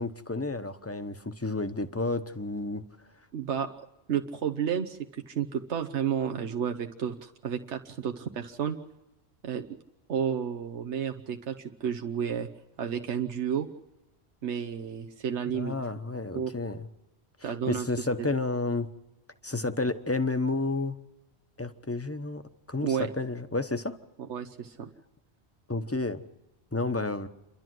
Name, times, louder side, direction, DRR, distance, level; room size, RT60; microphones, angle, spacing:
voice 1, 0.0-2.8 15.5-16.9 17.4-18.9 19.4-21.0 21.6-22.4 22.7-24.0 25.7-26.2 26.7-27.3, left 3 dB, 15° left, 9 dB, 0.9 m, -31 dB
voice 2, 3.3-3.7 4.1-8.8 9.4-9.6 10.1-12.5 12.8-13.7 14.4-15.7 16.3-16.5 17.4-18.3 22.8-23.1 24.3-24.9, right 8 dB, 85° right, 5 dB, 1.2 m, -31 dB
28.5 x 12.0 x 7.8 m, 1.0 s
omnidirectional pair, 1.1 m